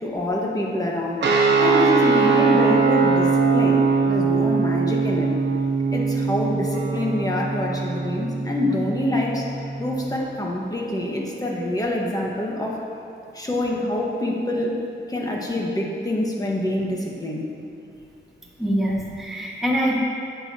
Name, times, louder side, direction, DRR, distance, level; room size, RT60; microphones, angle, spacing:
voice 1, 0.0-1.2 1.6-5.3 5.9-9.5 9.8-12.8 13.3-14.7 15.1-17.5, left 1 dB, 20° left, -2 dB, 1.5 m, -25 dB
sound 1, 1.2-10.2, right 4 dB, 65° right, 1.0 m, -21 dB
voice 2, 18.6-20.0, equal, ahead, -5 dB, 1.8 m, -24 dB
10.5 x 8.2 x 2.9 m, 2.7 s
cardioid pair, 85°, 20 cm